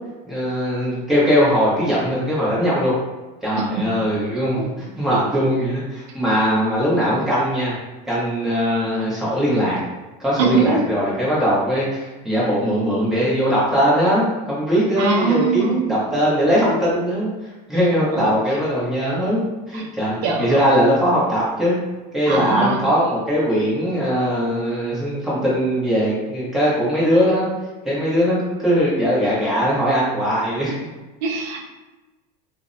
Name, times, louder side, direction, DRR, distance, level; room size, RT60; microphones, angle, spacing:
voice 1, 0.2-2.9 3.4-7.7 8.1-9.8 10.2-21.8 22.1-27.5 27.8-30.7, equal, ahead, -9 dB, 0.9 m, -20 dB
voice 2, 10.4-10.8 15.0-15.8 18.1-18.3 19.7-19.8 20.2-20.6 22.3-22.8 31.2-31.7, right 5 dB, 85° right, 1 dB, 0.5 m, -22 dB
2.6 x 2.1 x 2.5 m, 1.2 s
supercardioid pair, 135°, 21 cm